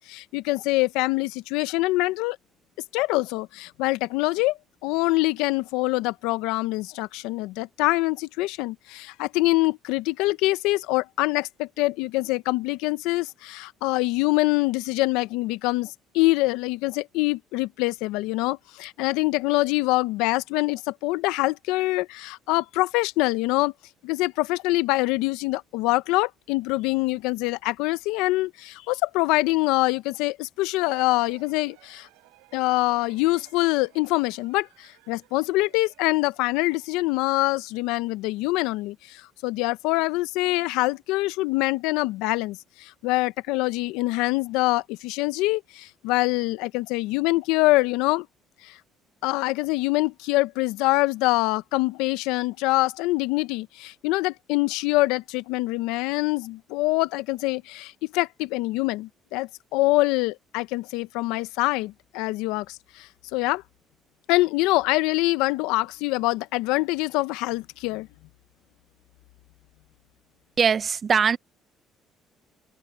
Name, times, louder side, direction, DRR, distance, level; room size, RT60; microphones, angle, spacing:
voice 1, 0.0-2.4 2.9-23.7 24.0-32.1 32.5-48.3 48.6-48.8 49.2-63.6 64.3-68.1, left 20 dB, 85° left, 0.8 m, -25 dB
sound 1, 30.8-37.2, right 27 dB, 90° right, 3.6 m, -55 dB
voice 2, 70.6-71.4, right 6 dB, 45° right, 0.8 m, -21 dB
supercardioid pair, 70°, 0 cm